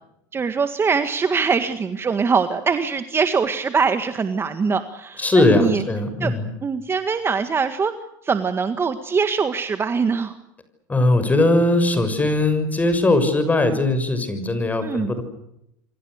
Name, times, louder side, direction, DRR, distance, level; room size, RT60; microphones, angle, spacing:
voice 1, 0.3-5.8 6.2-6.3 6.6-7.9 8.2-10.4 14.8-15.1, right 5 dB, 25° right, 9 dB, 1.8 m, -22 dB
voice 2, 5.2-6.5 10.9-15.2, left 2 dB, 15° left, 10 dB, 6.6 m, -19 dB
28.5 x 25.0 x 6.6 m, 0.80 s
hypercardioid pair, 95°, 10 cm